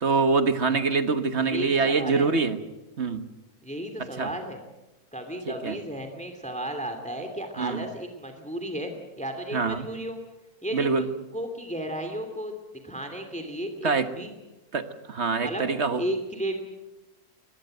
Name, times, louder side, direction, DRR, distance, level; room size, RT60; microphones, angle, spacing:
voice 1, 0.0-2.6 3.0-3.3 4.0-4.3 5.5-5.7 7.6-7.8 9.5-9.9 10.7-11.1 13.8-14.1 14.7-16.0, right 4 dB, 50° right, 10 dB, 1.6 m, -25 dB
voice 2, 1.5-2.3 3.6-4.6 5.1-10.2 10.6-11.1 11.3-12.5 12.8-14.3 15.4-15.6 16.0-16.6, right 1 dB, 5° left, 6 dB, 2.7 m, -33 dB
23.0 x 20.5 x 7.9 m, 1.1 s
omnidirectional pair, 1.6 m